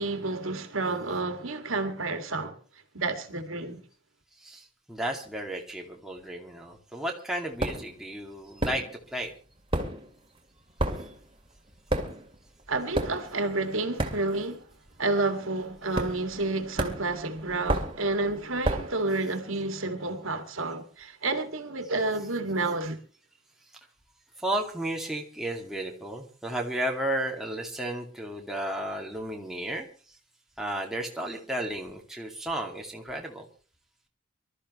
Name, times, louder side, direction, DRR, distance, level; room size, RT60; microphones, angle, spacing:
voice 1, 0.0-2.6 2.9-3.8 12.7-14.6 15.0-23.0, right 2 dB, 70° right, 2.3 m, -30 dB
voice 2, 4.4-9.3 11.0-11.1 24.4-30.2 30.6-33.5, right 1 dB, ahead, 2.4 m, -33 dB
sound 1, 7.6-8.0 8.6-9.2 9.5-14.6 14.9-15.2 15.9-16.5 16.8-19.0, right 1 dB, 25° right, 2.6 m, -31 dB
25.0 x 13.5 x 3.2 m
head